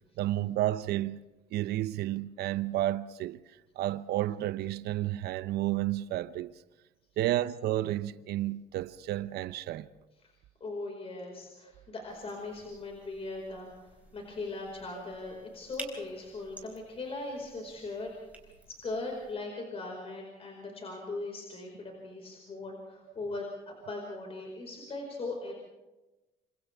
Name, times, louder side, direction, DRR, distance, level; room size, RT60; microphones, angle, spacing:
voice 1, 0.2-3.4 3.8-6.5 7.2-9.9, right 14 dB, 75° right, 0.7 m, -31 dB
voice 2, 10.6-18.1 18.4-23.5 23.9-25.5, left 2 dB, 35° left, 5.1 m, -39 dB
sound 1, 12.1-19.3, right 2 dB, 10° right, 4.7 m, -52 dB
28.0 x 26.0 x 3.5 m
cardioid pair, 110°, 17 cm